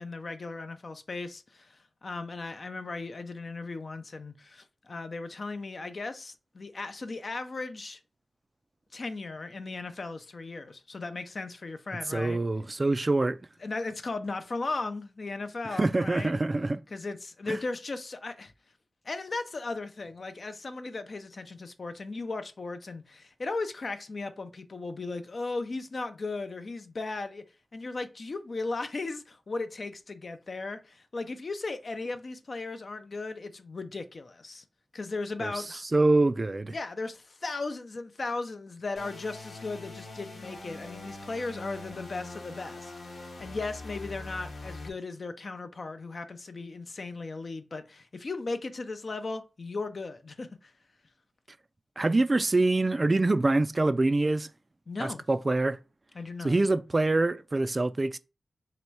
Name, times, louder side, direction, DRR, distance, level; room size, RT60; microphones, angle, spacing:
voice 1, 0.0-8.0 8.9-12.4 13.6-16.4 16.9-18.5 19.0-27.5 27.7-34.6 34.9-35.8 36.7-50.7 54.9-55.3 56.1-56.6, left 3 dB, 55° left, 0.5 m, -37 dB
voice 2, 12.1-13.4 15.7-16.8 17.5-17.6 35.4-35.6 35.9-36.7 52.0-54.5 55.0-55.8 56.4-58.2, right 2 dB, 35° right, 0.3 m, -25 dB
sound 1, 39.0-44.9, left 2 dB, 85° left, 1.0 m, -43 dB
3.1 x 2.9 x 4.6 m
cardioid pair, 60°, 0 cm